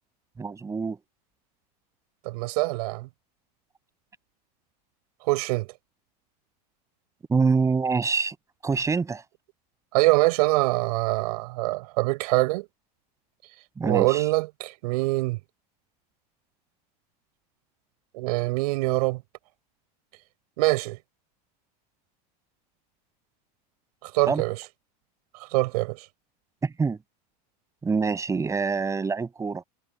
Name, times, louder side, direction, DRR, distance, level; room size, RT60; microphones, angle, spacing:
voice 1, 0.4-1.0 7.3-8.4 8.6-9.2 13.8-14.2 24.3-24.4 26.6-27.0 27.8-29.6, right 4 dB, 15° right, 7.6 m, -25 dB
voice 2, 2.2-3.1 5.2-5.7 9.9-12.7 13.8-15.4 18.1-19.2 20.6-21.0 24.0-24.6 25.5-26.1, right 22 dB, 70° right, 7.4 m, -24 dB
supercardioid pair, 140°, 21 cm